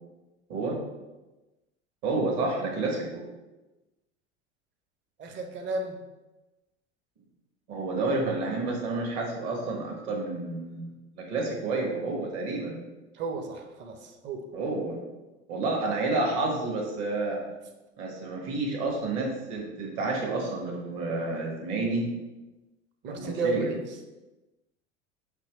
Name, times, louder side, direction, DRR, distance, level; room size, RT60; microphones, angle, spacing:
voice 1, 2.0-3.2 7.7-12.8 14.5-15.0 15.5-17.4 18.0-22.1 23.0-23.7, right 3 dB, 50° right, 0 dB, 1.3 m, -30 dB
voice 2, 5.2-6.0 13.2-14.4 23.0-23.8, right 3 dB, 30° right, 4 dB, 0.7 m, -32 dB
5.3 x 2.9 x 3.0 m, 1.1 s
figure-of-eight pair, 80°, 36 cm